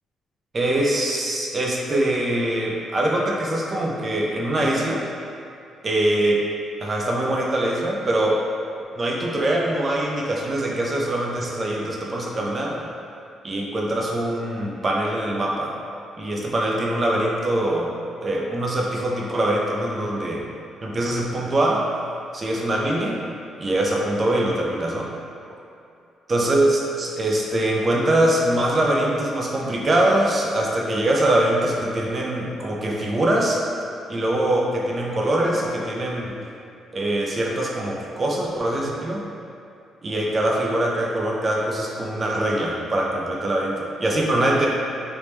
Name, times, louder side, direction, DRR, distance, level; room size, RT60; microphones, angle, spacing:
voice 1, 0.5-5.0 5.8-6.4 6.8-8.4 9.0-12.8 13.4-15.8 16.2-18.0 18.2-20.4 20.8-21.9 22.3-23.2 23.6-25.1 26.3-33.6 34.1-36.4 36.9-39.3 40.0-44.7, right 1 dB, 35° right, -2 dB, 0.6 m, -23 dB
3.4 x 3.0 x 3.1 m, 2.5 s
cardioid pair, 90°, 0 cm